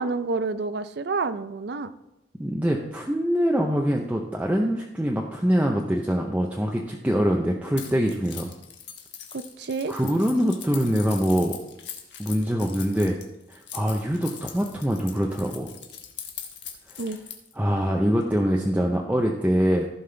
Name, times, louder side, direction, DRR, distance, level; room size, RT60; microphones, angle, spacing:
voice 1, 0.0-1.9 9.3-9.9 17.0-17.2, right 3 dB, 60° right, 13 dB, 0.5 m, -29 dB
voice 2, 2.4-8.5 9.9-11.6 12.2-13.2 13.5-15.7 17.5-19.9, equal, 10° right, 0 dB, 0.6 m, -24 dB
Keys jangling, 7.8-17.5, left 8 dB, 75° left, 1.2 m, -41 dB
15.0 x 5.5 x 3.3 m, 0.92 s
head